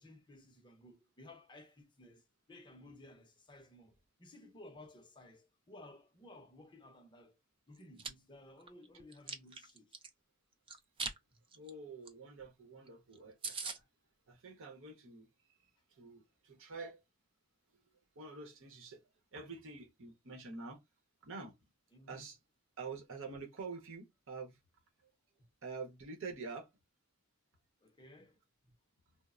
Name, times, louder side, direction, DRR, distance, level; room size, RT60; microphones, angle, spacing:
voice 1, 0.0-7.4 7.7-10.0 21.9-22.2 25.4-25.5 27.8-28.4 28.6-28.7, left 1 dB, 20° left, 0.6 m, -57 dB
Chewing mastication, 7.7-8.1 8.6-10.1 10.7-11.2 11.5-11.7 12.1-12.2 12.4-12.5 12.9-13.0 13.1-13.2 13.4-13.8, right 4 dB, 25° right, 0.4 m, -41 dB
voice 2, 11.5-13.9 14.3-17.0 18.1-20.8 21.2-21.6 22.1-22.4 22.8-24.6 25.0-25.1 25.6-26.7, right 4 dB, 60° right, 0.8 m, -47 dB
3.0 x 2.0 x 2.4 m
head